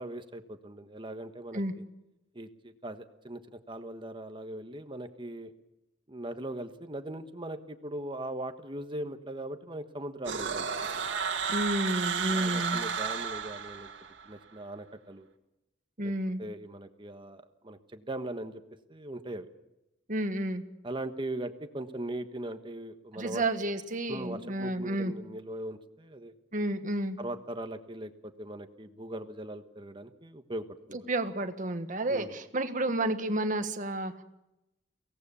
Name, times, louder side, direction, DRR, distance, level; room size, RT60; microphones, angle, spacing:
voice 1, 0.0-1.6 2.3-5.5 6.1-11.1 12.3-13.9 14.2-15.3 16.0-16.1 16.4-18.6 18.9-19.5 20.8-23.4 24.1-26.3 27.2-31.0 32.1-32.3, right 1 dB, 25° right, 8 dB, 1.3 m, -40 dB
Vocal Strain - Processed, 10.3-14.3, right 6 dB, 80° right, 2.0 m, -32 dB
voice 2, 11.5-12.8 16.0-16.4 20.1-20.6 23.1-25.1 26.5-27.2 30.9-34.2, right 1 dB, 45° right, 7 dB, 1.6 m, -31 dB
23.5 x 18.0 x 7.0 m, 0.93 s
head